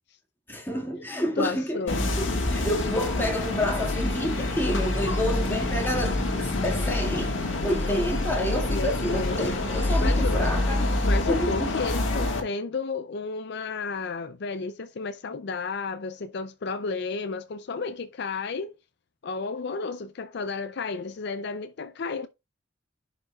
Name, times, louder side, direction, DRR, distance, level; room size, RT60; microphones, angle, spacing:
voice 1, 0.5-1.8 2.2-7.4 7.6-10.9 11.3-11.7, equal, 10° left, 1.9 m, -29 dB
voice 2, 1.4-2.1 8.7-9.4 10.0-10.4 11.0-18.7 19.2-22.3, left 4 dB, 60° left, 0.5 m, -32 dB
sound 1, 1.9-12.4, left 2 dB, 80° left, 1.7 m, -26 dB
11.0 x 5.1 x 2.4 m
head